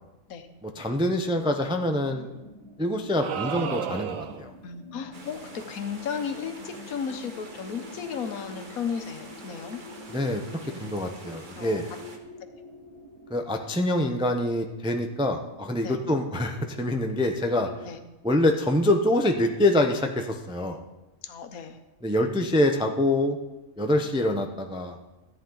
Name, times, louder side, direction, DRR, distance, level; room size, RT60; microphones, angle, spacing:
voice 1, 0.6-2.3 2.8-4.5 10.1-11.9 13.3-17.7 18.2-20.8 22.0-23.4 23.8-25.0, left 1 dB, 10° right, 4 dB, 0.3 m, -25 dB
sound 1, 1.3-17.9, left 2 dB, 25° left, 1.4 m, -47 dB
sound 2, 3.2-4.6, right 9 dB, 75° right, 1.0 m, -32 dB
voice 2, 4.6-9.8 10.7-10.9 11.5-12.0 15.8-16.0 17.8-18.0 21.2-21.8, left 6 dB, 80° left, 7 dB, 1.4 m, -35 dB
sound 3, 5.1-12.2, right 3 dB, 40° right, 1.1 m, -46 dB
14.0 x 9.2 x 3.9 m, 1.1 s
omnidirectional pair, 1.5 m